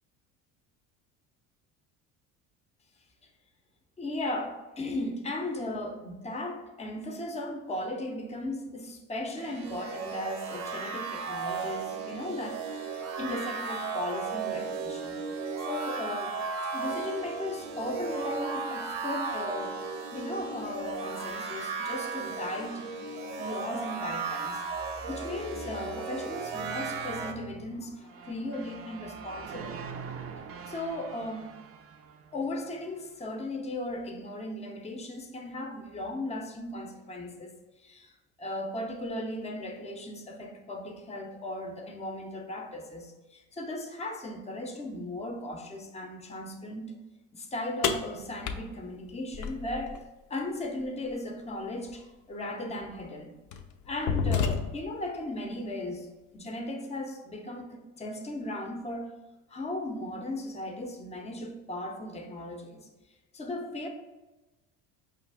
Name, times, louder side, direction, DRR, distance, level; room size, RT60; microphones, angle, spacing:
voice 1, 4.0-15.2 15.6-16.4 16.7-19.8 20.1-22.9 23.4-29.9 30.7-31.5 32.3-37.5 37.8-38.1 38.4-47.0 47.3-50.0 50.3-53.4 53.9-56.1 56.3-59.2 59.5-62.9 63.3-63.9, left 1 dB, 15° left, 4 dB, 0.7 m, -37 dB
sound 1, 9.4-27.3, right 4 dB, 70° right, 0.8 m, -35 dB
sound 2, 28.0-33.1, right 6 dB, 40° right, 0.5 m, -44 dB
sound 3, 47.8-50.0 51.9-52.0 52.8-53.0 53.5-55.0, left 6 dB, 50° left, 0.5 m, -30 dB
4.9 x 2.4 x 3.4 m, 1.1 s
hypercardioid pair, 75°, 38 cm